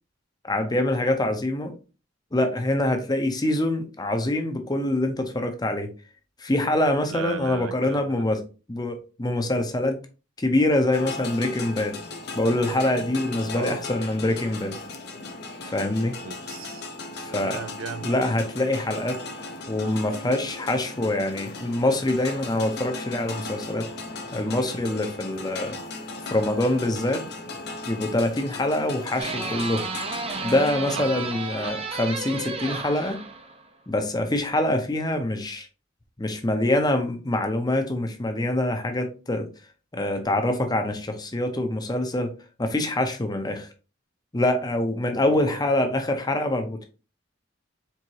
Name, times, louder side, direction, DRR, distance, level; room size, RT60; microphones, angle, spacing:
voice 1, 0.4-1.7 2.3-5.9 6.4-8.4 8.7-10.0 10.4-12.0 12.3-14.8 15.6-16.1 17.2-17.6 18.0-19.2 19.7-23.9 24.3-25.8 26.3-27.2 27.9-29.8 30.4-33.2 33.9-35.7 36.2-39.5 39.9-42.3 42.6-43.7 44.3-46.9, left 1 dB, 20° left, 0.7 m, -25 dB
voice 2, 7.1-8.3 13.5-13.9 16.2-16.8 17.3-18.1 31.0-31.3 45.3-45.6, right 6 dB, 85° right, 0.5 m, -36 dB
sound 1, 10.9-30.7, left 3 dB, 55° left, 0.7 m, -37 dB
sound 2, 29.2-33.7, right 4 dB, 30° right, 0.6 m, -32 dB
4.7 x 3.5 x 2.8 m
head